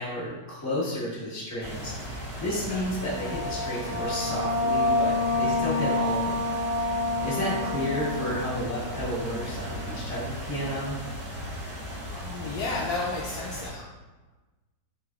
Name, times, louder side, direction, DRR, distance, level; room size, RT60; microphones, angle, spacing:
voice 1, 0.0-6.4 6.8-10.9, equal, 10° left, -9 dB, 1.0 m, -32 dB
sound 1, 1.6-13.7, equal, 75° right, 2.1 m, -37 dB
sound 2, 2.9-10.1, left 2 dB, 35° left, 1.3 m, -29 dB
voice 2, 12.1-13.9, left 3 dB, 70° left, -4 dB, 1.0 m, -33 dB
5.0 x 3.2 x 2.3 m, 1.2 s
omnidirectional pair, 2.0 m